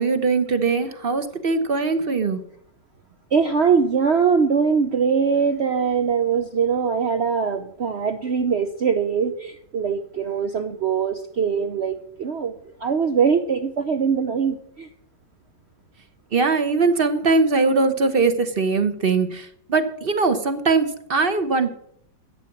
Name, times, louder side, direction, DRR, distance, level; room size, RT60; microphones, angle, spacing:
voice 1, 0.0-2.4 16.3-21.7, right 4 dB, 40° right, 10 dB, 0.8 m, -21 dB
voice 2, 3.3-12.5 12.8-14.9, right 6 dB, 75° right, 9 dB, 0.6 m, -22 dB
11.5 x 8.6 x 7.2 m, 0.69 s
omnidirectional pair, 2.0 m